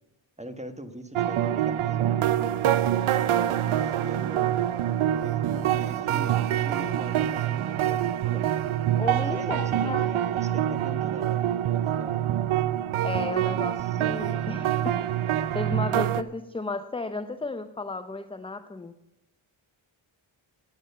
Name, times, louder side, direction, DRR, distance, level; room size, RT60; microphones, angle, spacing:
voice 1, 0.4-2.6 3.2-4.6 5.2-8.5 9.2-12.3 13.2-14.0, right 1 dB, 15° right, 8 dB, 1.3 m, -42 dB
sound 1, 1.2-16.2, right 11 dB, 75° right, 0.6 m, -26 dB
voice 2, 9.0-10.1 13.0-14.9 15.5-18.9, left 3 dB, 10° left, 10 dB, 0.5 m, -33 dB
10.5 x 8.7 x 6.7 m, 0.99 s
cardioid pair, 55°, 49 cm